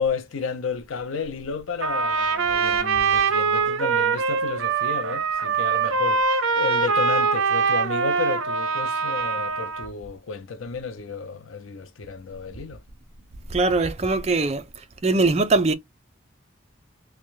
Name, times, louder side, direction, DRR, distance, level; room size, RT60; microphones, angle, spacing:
voice 1, 0.0-12.8, left 5 dB, 85° left, 0.6 m, -32 dB
Trumpet, 1.8-9.9, right 5 dB, 80° right, 0.6 m, -23 dB
voice 2, 13.5-14.6 15.0-15.7, right 3 dB, 30° right, 0.4 m, -21 dB
2.8 x 2.2 x 3.1 m
head